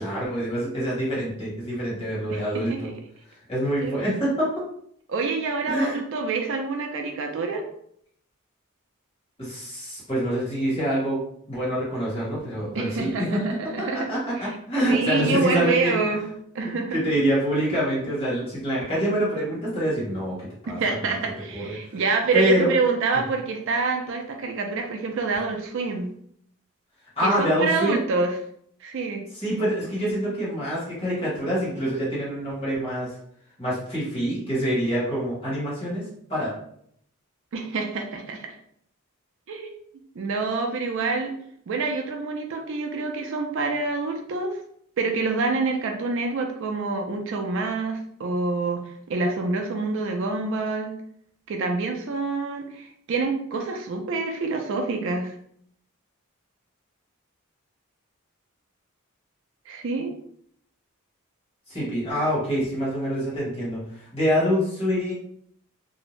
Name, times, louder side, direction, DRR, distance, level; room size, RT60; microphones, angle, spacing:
voice 1, 0.0-2.9 3.5-4.5 5.7-6.0 9.4-11.2 11.5-13.4 13.8-16.2 16.6-21.2 21.5-21.7 22.3-22.7 23.1-23.2 27.2-28.0 29.3-33.1 33.6-36.0 36.3-36.5 61.7-65.1, equal, 25° left, -7 dB, 1.2 m, -26 dB
voice 2, 2.3-2.9 3.8-4.1 5.1-7.6 12.7-14.6 14.9-16.3 16.5-17.0 20.7-26.1 27.2-28.3 28.8-29.2 37.5-38.5 39.5-39.7 40.2-41.3 41.7-44.6 45.0-50.9 51.5-55.3 59.7-60.1, right 4 dB, 55° right, 4 dB, 0.4 m, -27 dB
2.6 x 2.0 x 3.0 m, 0.67 s
head